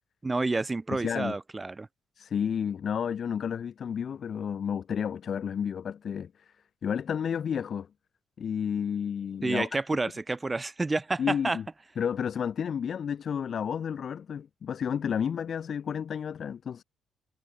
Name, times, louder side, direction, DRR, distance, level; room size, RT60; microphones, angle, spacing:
voice 1, 0.2-1.9 9.4-11.6, right 3 dB, 20° right, 1.7 m, -29 dB
voice 2, 0.9-1.4 2.2-6.5 6.8-7.9 8.4-9.7 11.2-11.6 12.0-16.8, left 7 dB, 55° left, 3.2 m, -31 dB
cardioid pair, 90°, 0 cm